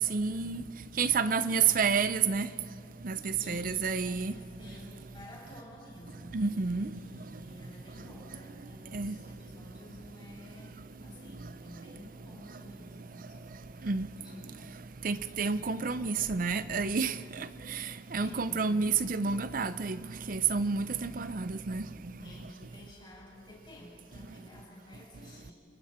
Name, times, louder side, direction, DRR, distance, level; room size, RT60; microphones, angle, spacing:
voice 1, 0.1-0.6 1.0-2.5 3.0-4.3 6.3-6.9 8.9-9.1 13.8-14.1 15.0-17.1 18.1-20.0 20.3-21.8, right 5 dB, 50° right, 14 dB, 0.6 m, -29 dB
voice 2, 1.3-1.7 3.4-6.4 6.7-14.7 18.1-19.0 22.2-25.5, left 1 dB, 25° left, -4 dB, 6.5 m, -52 dB
29.5 x 23.0 x 4.4 m, 2.7 s
head